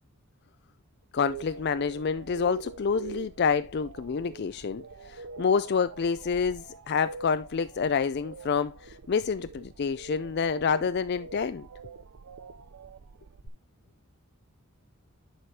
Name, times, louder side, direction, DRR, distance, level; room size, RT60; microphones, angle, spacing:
voice 1, 1.1-4.8 5.1-11.7, left 6 dB, 50° left, 0.4 m, -28 dB
sound 1, 1.2-13.5, right 5 dB, 75° right, 0.6 m, -45 dB
10.5 x 5.0 x 2.8 m
head